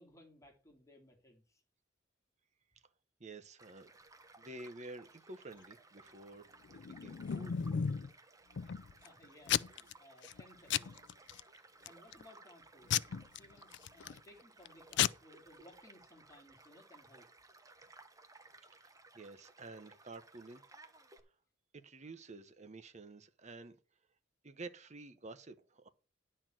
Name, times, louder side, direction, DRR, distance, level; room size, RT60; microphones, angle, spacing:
voice 1, 0.0-1.6 8.9-10.9 11.8-12.9 13.4-17.3, left 1 dB, 15° left, 2.7 m, -61 dB
voice 2, 3.2-3.9 4.4-7.6 18.7-20.6 21.7-23.8 24.4-25.9, right 2 dB, 40° right, 1.0 m, -50 dB
Child speech kid speaking / Stream / Car passing by, 3.6-21.2, right 3 dB, 20° right, 1.1 m, -60 dB
Packing tape duct tape / Tearing, 6.7-8.1 8.6-9.1 9.5-9.9 10.2-10.4 10.7-11.4 11.9-12.2 12.9-14.2 14.6-14.7 14.9-15.1, left 9 dB, 65° left, 0.4 m, -34 dB
10.5 x 4.4 x 7.5 m
head